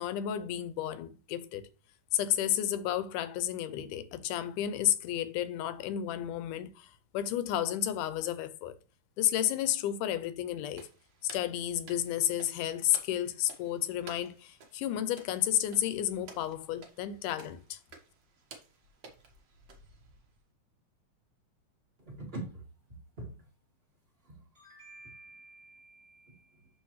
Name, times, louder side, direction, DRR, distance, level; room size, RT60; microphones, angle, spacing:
voice 1, 0.0-1.7 2.1-8.7 9.2-10.8 11.2-17.8, left 11 dB, 85° left, 2.1 m, -32 dB
sound 1, 10.7-20.4, right 4 dB, 50° right, 1.3 m, -55 dB
voice 2, 22.1-22.5 23.2-23.3 24.2-26.7, right 2 dB, 25° right, 1.5 m, -45 dB
11.5 x 3.8 x 3.1 m
omnidirectional pair, 3.7 m